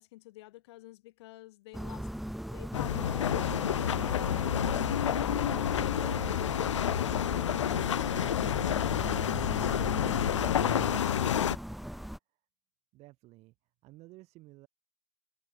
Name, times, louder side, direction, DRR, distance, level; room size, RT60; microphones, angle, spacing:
voice 1, 0.0-2.1 4.1-6.1 6.6-10.3, left 18 dB, 65° left, 2.4 m, -51 dB
sound 1, 1.7-12.2, equal, ahead, 0.8 m, -39 dB
sound 2, 2.7-11.5, left 10 dB, 90° left, 0.5 m, -29 dB
voice 2, 12.9-13.5 13.8-14.7, right 19 dB, 45° right, 7.3 m, -53 dB
hypercardioid pair, 100°, 15 cm